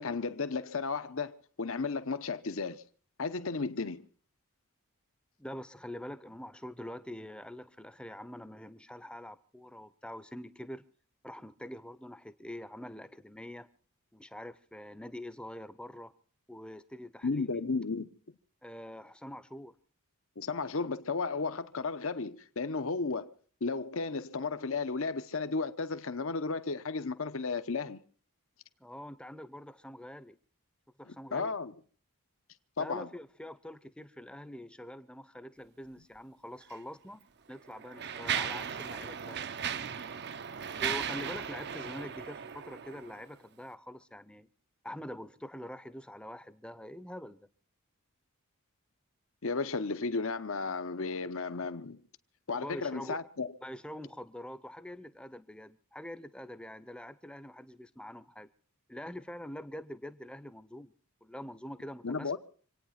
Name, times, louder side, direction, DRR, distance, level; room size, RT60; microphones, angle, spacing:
voice 1, 0.0-2.8 3.2-4.1 17.2-18.1 20.4-23.3 23.6-28.0 31.3-31.7 32.8-33.1 49.4-52.0 52.5-53.5 62.0-62.4, left 4 dB, 65° left, 0.9 m, -34 dB
voice 2, 5.4-10.8 11.2-13.7 14.1-16.1 16.5-17.5 18.6-19.7 28.8-30.4 31.0-31.5 32.8-39.5 40.8-44.5 44.8-47.5 52.5-53.2 53.6-58.5 58.9-60.9 61.2-62.4, left 1 dB, 5° left, 0.7 m, -45 dB
Mechanisms, 36.6-36.8 37.5-43.2, right 8 dB, 50° right, 0.7 m, -37 dB
26.5 x 9.4 x 5.8 m
head